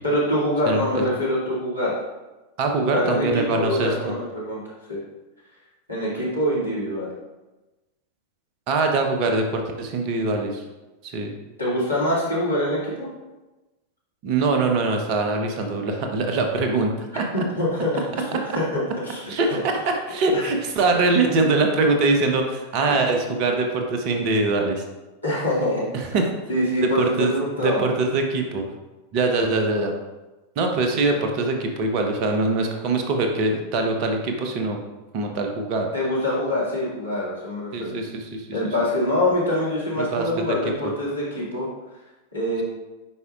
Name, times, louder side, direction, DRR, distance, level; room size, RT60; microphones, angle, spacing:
voice 1, 0.0-1.9 2.8-5.0 5.9-7.1 11.6-13.1 17.1-19.3 20.3-20.5 22.9-23.0 25.2-25.9 26.5-27.8 35.9-38.0 38.5-41.7 42.3-42.6, left 1 dB, 85° left, -8 dB, 2.2 m, -25 dB
voice 2, 0.6-1.1 2.6-3.9 8.7-10.6 11.0-11.3 14.2-17.3 19.3-24.8 25.9-26.3 26.9-27.3 27.6-28.6 29.1-29.9 30.6-34.8 35.1-35.9 37.7-38.5 40.0-40.5 40.8-40.9, right 3 dB, 40° right, 3 dB, 1.0 m, -23 dB
9.5 x 4.8 x 2.4 m, 1.1 s
figure-of-eight pair, 90°, 0 cm